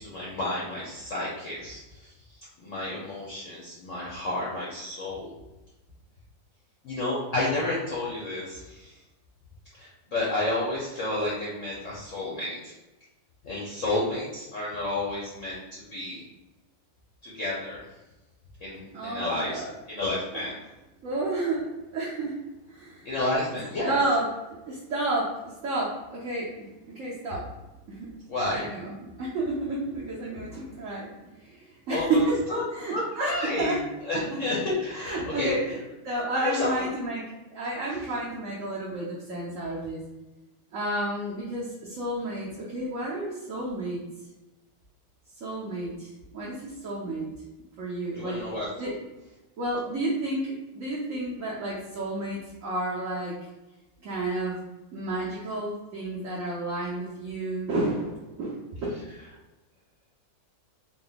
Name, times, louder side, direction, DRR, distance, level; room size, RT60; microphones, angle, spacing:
voice 1, 0.0-2.1 2.6-5.3 6.8-9.0 9.7-12.7 13.4-16.2 17.2-17.8 18.6-19.6 19.9-20.6 23.0-24.0 28.3-28.7 31.9-32.6 32.9-33.8 34.0-35.5 36.3-36.9 48.1-48.7, left 2 dB, 55° left, -6 dB, 0.9 m, -31 dB
voice 2, 18.9-19.7 20.3-20.4 21.0-21.7 21.9-22.4 22.7-23.1 23.8-24.3 24.7-27.5 27.9-28.1 28.4-28.9 29.2-31.1 31.4-32.3 32.7-33.8 34.1-34.4 34.9-37.2 37.5-40.0 40.7-44.0 45.4-47.3 47.8-48.4 48.8-49.0 49.6-53.4 54.0-54.6 54.9-58.5, right 2 dB, 60° right, -7 dB, 0.9 m, -31 dB
3.8 x 2.1 x 3.9 m, 1.0 s
omnidirectional pair, 2.1 m